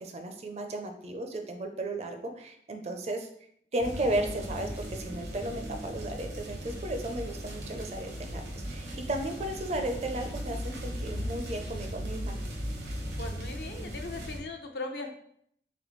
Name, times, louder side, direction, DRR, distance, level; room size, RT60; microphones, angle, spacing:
voice 1, 0.0-3.3 3.7-12.4, right 1 dB, 35° right, 5 dB, 0.4 m, -34 dB
sound 1, 3.8-14.4, equal, 80° right, 0.9 m, -37 dB
voice 2, 13.2-15.2, left 2 dB, 65° left, 4 dB, 0.6 m, -39 dB
4.1 x 3.3 x 3.1 m, 0.67 s
head